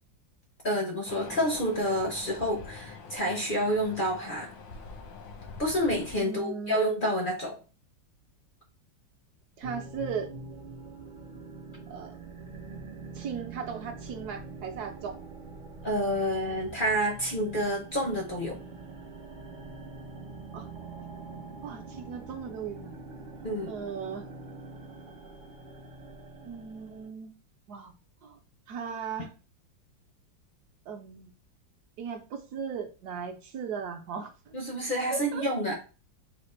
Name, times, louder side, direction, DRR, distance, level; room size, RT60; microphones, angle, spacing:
voice 1, 0.6-4.5 5.6-7.6 15.8-18.6 23.4-23.7 34.5-35.7, equal, 65° left, 1 dB, 0.5 m, -28 dB
sound 1, 1.1-6.2, left 4 dB, 85° left, 1.8 m, -45 dB
voice 2, 6.2-6.8 9.6-10.3 11.9-12.1 13.1-15.2 20.5-20.7 21.6-22.9 23.7-24.3 26.4-27.3 27.7-27.9 28.2-28.4 28.7-29.3 30.9-31.3 32.0-34.5 35.1-35.4, right 6 dB, 65° right, 4 dB, 1.0 m, -37 dB
sound 2, 9.6-27.1, right 3 dB, 85° right, 0.4 m, -44 dB
4.9 x 2.1 x 4.2 m, 0.35 s
omnidirectional pair, 2.1 m